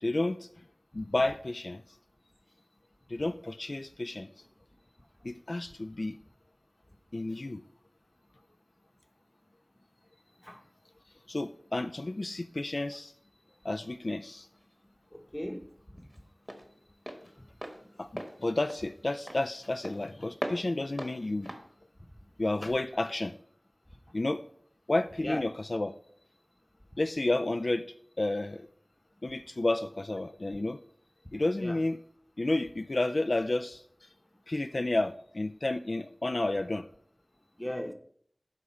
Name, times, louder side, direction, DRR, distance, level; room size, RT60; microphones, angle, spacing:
voice 1, 0.0-0.5 0.9-1.8 3.1-4.3 5.2-6.2 7.1-7.6 11.3-13.1 13.6-14.5 18.0-21.5 22.4-23.4 24.1-24.4 24.9-25.9 27.0-27.9 28.2-28.7 29.2-30.8 31.3-32.0 32.4-34.1 34.5-36.9, left 2 dB, 60° left, 0.3 m, -31 dB
Walk footsteps, 14.2-22.9, equal, 25° right, 1.2 m, -43 dB
voice 2, 15.1-16.1 25.2-25.4 31.6-31.8 37.6-37.9, equal, 15° left, 0.9 m, -37 dB
11.5 x 4.8 x 4.4 m
wide cardioid pair, 50°, 0 cm